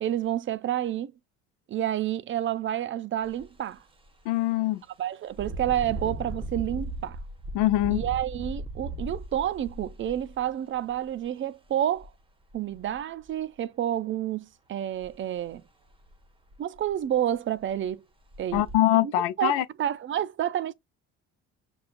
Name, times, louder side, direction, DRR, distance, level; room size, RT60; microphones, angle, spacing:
voice 1, 0.0-1.1 1.7-3.8 5.0-7.2 7.9-12.1 12.5-15.6 16.6-18.0 18.4-18.6 18.9-20.7, right 11 dB, 40° right, 0.5 m, -29 dB
Engine, 3.2-3.4 3.9-4.1 5.3-11.1 12.0-12.1 12.5-13.2 15.0-15.2 15.5-15.6 16.1-16.2 16.5-17.0 17.6-17.7 18.3-18.7, right 1 dB, 15° right, 0.9 m, -37 dB
voice 2, 4.3-4.8 7.5-8.0 18.5-19.6, left 15 dB, 85° left, 0.5 m, -23 dB
6.1 x 2.3 x 2.5 m
supercardioid pair, 80°, 30 cm